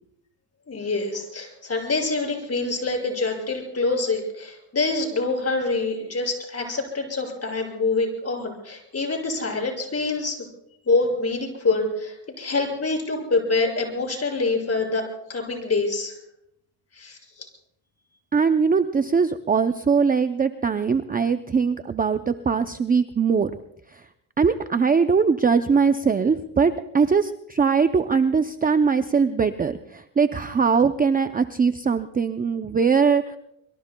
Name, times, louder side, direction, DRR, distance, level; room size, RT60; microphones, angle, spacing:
voice 1, 0.7-10.4 10.9-16.1 16.9-17.5, left 3 dB, 30° left, 2 dB, 6.1 m, -26 dB
voice 2, 18.3-23.5 23.9-24.0 24.4-33.4, right 5 dB, 20° right, 9 dB, 0.5 m, -21 dB
25.5 x 24.0 x 2.3 m, 0.76 s
cardioid pair, 115°, 50 cm